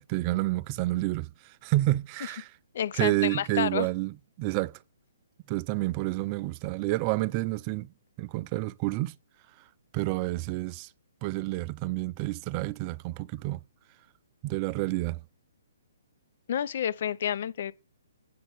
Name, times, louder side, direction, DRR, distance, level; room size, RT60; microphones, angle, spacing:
voice 1, 0.0-2.5 2.9-4.8 5.5-7.9 8.2-9.2 9.9-10.9 11.2-13.6 14.4-15.2, right 18 dB, 30° right, 0.4 m, -29 dB
voice 2, 2.7-3.9 16.5-17.7, left 9 dB, 55° left, 0.7 m, -29 dB
8.5 x 5.3 x 7.0 m
hypercardioid pair, 135°, 0 cm